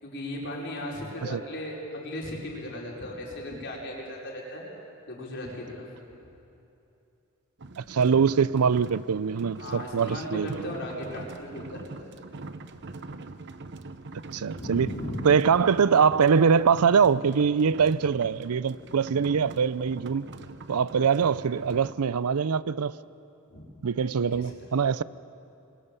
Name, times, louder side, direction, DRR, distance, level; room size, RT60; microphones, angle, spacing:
voice 1, 0.0-4.6 5.1-5.9 9.6-12.1 14.5-15.2 21.0-21.2 23.5-23.7 24.3-24.5, left 1 dB, 55° left, 4.9 m, -37 dB
sound 1, 7.6-21.9, right 3 dB, 55° right, 0.9 m, -43 dB
voice 2, 7.8-10.6 14.3-14.9 15.2-20.3 20.7-22.9 23.8-25.0, right 6 dB, 90° right, 0.5 m, -23 dB
26.5 x 22.0 x 6.8 m
head